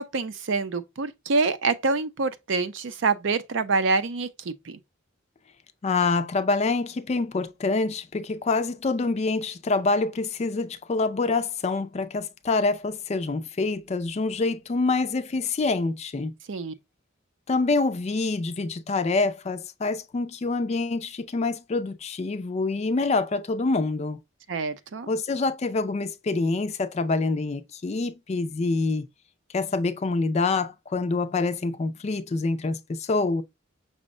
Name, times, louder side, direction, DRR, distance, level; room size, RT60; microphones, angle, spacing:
voice 1, 0.0-4.8 16.5-16.7 24.5-25.1, right 4 dB, 65° right, 0.5 m, -26 dB
voice 2, 5.8-16.3 17.5-24.2 25.1-29.1 29.5-33.4, left 3 dB, 35° left, 0.4 m, -26 dB
6.0 x 2.1 x 3.6 m
head